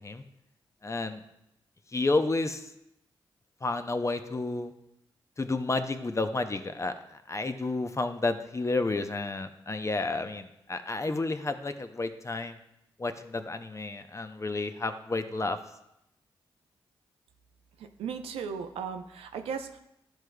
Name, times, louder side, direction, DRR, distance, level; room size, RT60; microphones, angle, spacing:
voice 1, 0.8-1.2 1.9-2.7 3.6-4.7 5.4-6.9 7.3-12.6 13.0-15.6, left 3 dB, 30° left, 8 dB, 0.6 m, -31 dB
voice 2, 17.8-19.8, right 6 dB, 85° right, 6 dB, 0.5 m, -36 dB
10.5 x 4.8 x 2.3 m, 0.82 s
supercardioid pair, 45°, 10 cm